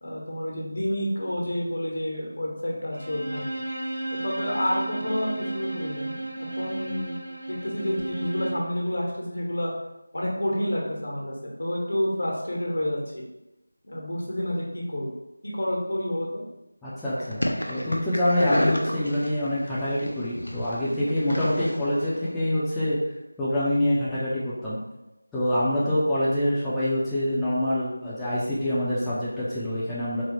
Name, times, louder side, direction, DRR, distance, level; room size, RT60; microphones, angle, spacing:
voice 1, 0.0-3.6 4.1-6.2 6.6-7.2 7.5-9.7 10.1-13.0 13.8-15.1 15.4-16.4, left 1 dB, 65° left, -2 dB, 1.1 m, -29 dB
Bowed string instrument, 2.9-8.7, right 2 dB, 85° right, 0.9 m, -34 dB
voice 2, 16.8-23.0 23.4-24.8 25.3-30.2, left 1 dB, 5° left, -13 dB, 0.4 m, -25 dB
sound 1, 17.2-22.3, equal, 85° left, 0.6 m, -31 dB
3.9 x 2.1 x 3.1 m, 0.93 s
figure-of-eight pair, 170°, 0 cm